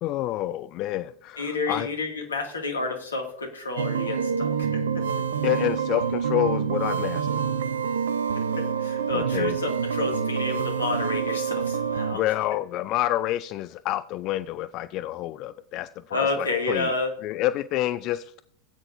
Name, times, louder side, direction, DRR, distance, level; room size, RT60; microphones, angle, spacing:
voice 1, 0.0-1.9 5.4-7.3 9.1-9.6 12.1-16.9 17.2-18.4, left 14 dB, 45° left, 14 dB, 0.4 m, -28 dB
voice 2, 1.4-5.1 8.6-12.2 16.1-17.1, left 3 dB, 75° left, 3 dB, 2.3 m, -30 dB
sound 1, 3.8-12.2, right 7 dB, 70° right, 0.6 m, -27 dB
17.0 x 8.8 x 2.6 m, 0.64 s
figure-of-eight pair, 85°, 0 cm